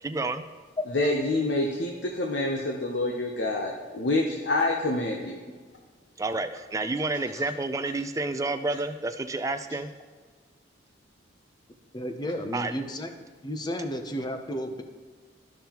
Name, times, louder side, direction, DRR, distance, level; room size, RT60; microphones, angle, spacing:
voice 1, 0.0-0.5 6.2-9.9 12.5-12.8, right 2 dB, 15° right, 8 dB, 0.4 m, -30 dB
voice 2, 0.9-5.4, left 2 dB, 70° left, 1 dB, 0.7 m, -27 dB
voice 3, 11.9-13.1 13.4-14.8, equal, 25° left, 6 dB, 0.6 m, -32 dB
13.0 x 5.3 x 2.9 m, 1.5 s
head